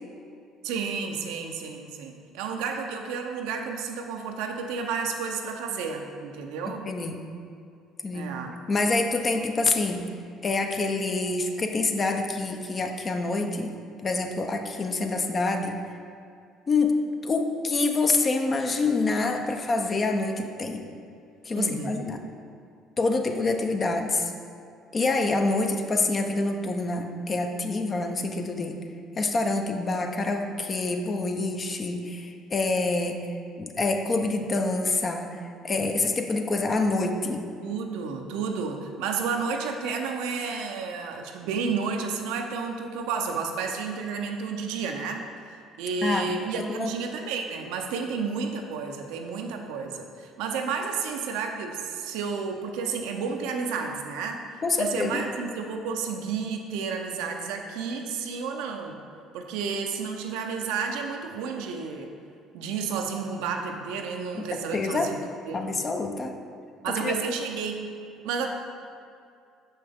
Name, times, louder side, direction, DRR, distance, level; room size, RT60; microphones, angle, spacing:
voice 1, 0.6-6.9 8.1-8.6 21.6-22.0 37.6-45.3 45.8-59.0 59.3-62.1 62.5-65.2 65.5-65.8 66.8-67.9 68.2-68.5, right 5 dB, 80° right, 3 dB, 0.6 m, -31 dB
voice 2, 6.9-7.2 8.0-8.3 8.7-10.0 10.4-13.7 14.0-15.8 16.7-20.8 21.4-22.2 23.0-24.3 24.9-28.8 29.2-33.2 33.6-37.5 46.0-46.4 46.7-46.9 54.6-55.2 64.7-65.1 65.5-66.3 67.0-67.1, left 3 dB, 35° left, 4 dB, 0.7 m, -26 dB
6.6 x 5.5 x 3.6 m, 2.4 s
supercardioid pair, 70°, 0 cm